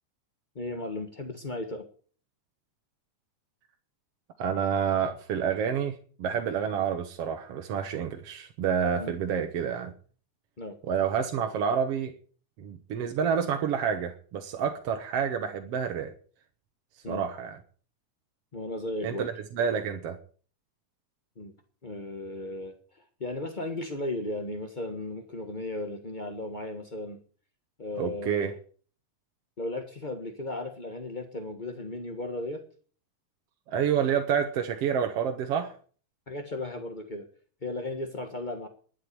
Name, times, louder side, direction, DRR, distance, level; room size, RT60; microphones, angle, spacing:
voice 1, 0.5-1.8 9.0-9.1 10.6-10.8 17.0-17.2 18.5-19.3 21.4-21.5 21.8-27.2 27.8-28.6 29.6-32.6 36.3-37.3 37.6-38.7, left 2 dB, 45° left, 6 dB, 0.5 m, -35 dB
voice 2, 4.4-9.9 10.9-12.1 12.6-16.1 17.1-17.6 19.0-20.2 28.0-28.5 33.7-35.8, right 7 dB, 60° right, 5 dB, 1.9 m, -28 dB
11.5 x 9.7 x 8.5 m, 0.43 s
omnidirectional pair, 3.4 m